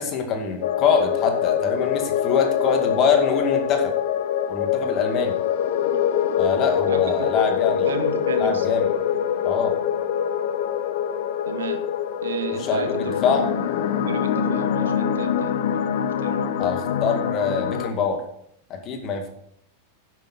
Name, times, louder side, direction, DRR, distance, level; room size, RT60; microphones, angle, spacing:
voice 1, 0.0-3.9 4.5-5.4 6.4-7.9 8.4-8.9 9.4-9.7 12.7-13.5 16.6-18.2 18.7-19.3, left 5 dB, 35° left, 5 dB, 2.2 m, -24 dB
sound 1, 0.6-17.9, left 9 dB, 55° left, 0.7 m, -24 dB
voice 2, 6.9-7.5 7.7-8.8 11.5-11.8 12.2-13.5 14.1-15.6 16.2-16.5, right 6 dB, 65° right, 9 dB, 1.1 m, -33 dB
10.5 x 8.1 x 5.6 m, 0.72 s
figure-of-eight pair, 90°, 0 cm